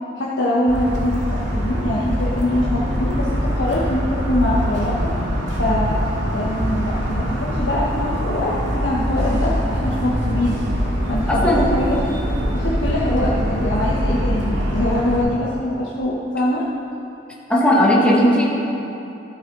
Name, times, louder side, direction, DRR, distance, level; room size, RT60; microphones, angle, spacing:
voice 1, 0.2-4.9 5.6-6.0 6.3-10.6 11.1-12.0 12.5-16.6, left 1 dB, 85° left, -6 dB, 1.2 m, -23 dB
Motor vehicle (road) / Siren, 0.7-15.2, equal, 75° right, 2.0 m, -23 dB
voice 2, 11.3-11.6 17.5-18.5, left 1 dB, 5° left, -5 dB, 1.7 m, -16 dB
14.0 x 7.8 x 3.8 m, 3.0 s
head